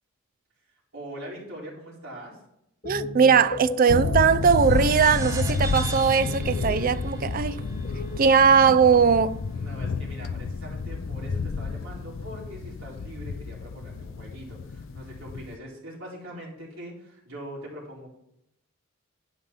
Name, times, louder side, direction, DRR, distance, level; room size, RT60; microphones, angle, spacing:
voice 1, 0.9-2.4 9.5-18.1, right 1 dB, 70° right, 4.3 m, -42 dB
sound 1, 2.8-8.2, equal, 35° left, 2.2 m, -37 dB
voice 2, 2.8-7.6 8.2-9.4, right 6 dB, 40° right, 0.4 m, -20 dB
sound 2, 3.9-15.6, left 4 dB, 65° left, 0.4 m, -31 dB
sound 3, 4.4-9.3, right 1 dB, 15° right, 0.7 m, -41 dB
11.5 x 5.3 x 5.6 m
head